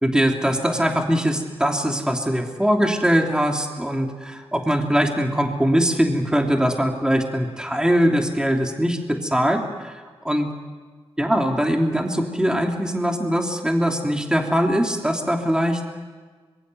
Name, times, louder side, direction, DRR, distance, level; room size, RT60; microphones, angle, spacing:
voice 1, 0.0-10.5 11.2-15.8, equal, 5° right, 2 dB, 3.1 m, -22 dB
25.5 x 22.5 x 7.9 m, 1.4 s
cardioid pair, 55°, 11 cm